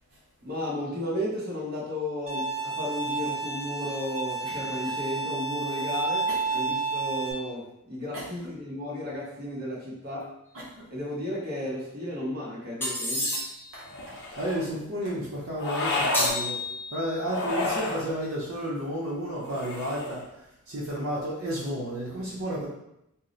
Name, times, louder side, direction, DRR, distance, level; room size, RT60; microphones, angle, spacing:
voice 1, 0.4-10.3 10.9-13.3, left 1 dB, 45° right, -6 dB, 1.0 m, -34 dB
Bowed string instrument, 2.3-7.3, right 3 dB, 30° right, 0.4 m, -30 dB
voice 2, 6.3-6.6 8.1-8.3 10.5-10.9 13.7-13.9 14.4-16.6 16.9-20.3 20.7-22.7, equal, 75° right, -6 dB, 0.7 m, -32 dB
sound 1, 12.8-13.8 16.1-17.2, left 1 dB, 10° left, 0.8 m, -30 dB
sound 2, 13.9-14.7 15.6-16.3 17.2-18.1 19.4-20.3, left 2 dB, 55° left, 0.6 m, -30 dB
2.8 x 2.0 x 3.7 m, 0.82 s
head